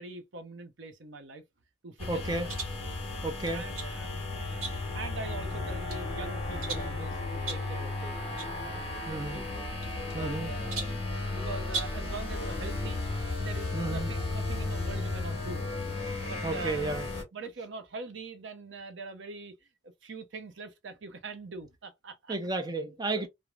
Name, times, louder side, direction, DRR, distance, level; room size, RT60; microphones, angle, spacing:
voice 1, 0.0-1.4 1.8-2.6 3.5-4.6 4.9-8.2 8.6-9.4 10.0-13.0 13.4-15.7 16.3-16.9 17.3-19.5 20.0-22.3 22.8-23.2, right 3 dB, 60° right, 0.6 m, -43 dB
sound 1, 2.0-17.2, left 2 dB, 30° left, 0.9 m, -34 dB
voice 2, 2.1-2.5 3.2-3.7 9.1-9.4 10.1-10.5 13.7-14.1 16.4-17.1 22.3-23.3, right 2 dB, 20° right, 0.5 m, -32 dB
sound 2, 2.5-2.8 3.5-4.0 4.6-5.0 5.5-6.1 6.6-7.0 7.5-7.7 8.4-8.6 8.8-8.9 9.8-10.4 10.7-11.1 11.7-12.1, right 4 dB, 85° right, 1.0 m, -38 dB
3.0 x 2.0 x 2.3 m
head